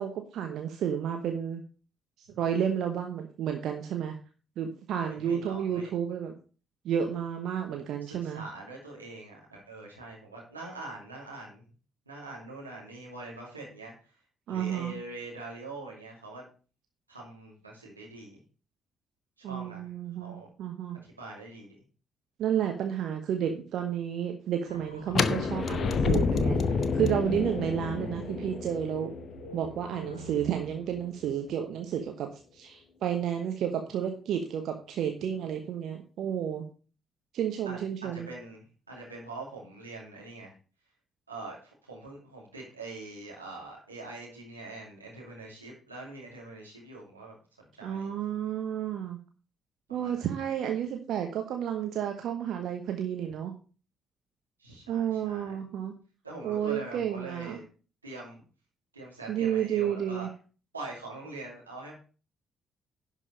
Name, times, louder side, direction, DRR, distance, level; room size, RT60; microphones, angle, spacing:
voice 1, 0.0-1.6 2.2-4.1 4.6-6.3 6.8-8.4 14.5-14.9 19.4-21.0 22.4-29.1 29.5-36.7 37.3-38.3 47.8-49.2 49.9-53.5 54.9-55.9 56.4-57.6 59.3-60.3, right 9 dB, 55° right, 4 dB, 1.1 m, -31 dB
voice 2, 5.0-5.9 7.7-11.7 12.1-14.2 14.5-16.5 17.1-18.4 19.4-19.9 20.2-20.5 21.0-21.8 37.7-40.5 41.3-48.3 49.9-50.2 54.6-55.6 56.2-57.6 58.0-58.4 58.9-60.3 60.7-61.9, right 2 dB, 85° right, -3 dB, 2.5 m, -44 dB
sound 1, 24.7-32.1, right 1 dB, 85° left, 1.2 m, -47 dB
sound 2, 25.1-31.0, left 5 dB, 45° left, 0.8 m, -29 dB
11.0 x 5.4 x 5.2 m, 0.37 s
figure-of-eight pair, 40°, 0 cm